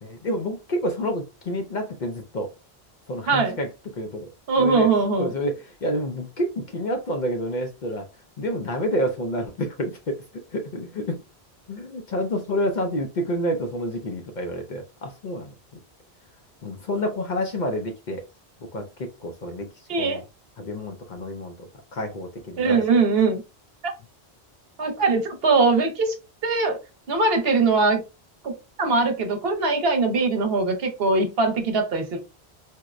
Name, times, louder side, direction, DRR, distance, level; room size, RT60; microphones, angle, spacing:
voice 1, 0.0-2.5 3.1-3.7 3.9-4.3 4.6-4.9 5.2-8.0 8.4-10.2 10.5-11.2 11.7-15.5 16.6-18.2 18.7-19.7 20.0-20.2 20.6-22.8, equal, 55° left, 0.6 m, -28 dB
voice 2, 3.3-3.6 4.5-5.3 19.9-20.2 22.6-23.4 23.8-23.9 24.8-26.1 26.4-26.8 27.1-28.0 28.4-32.2, right 4 dB, 65° right, 1.0 m, -21 dB
4.4 x 2.1 x 2.4 m
omnidirectional pair, 1.1 m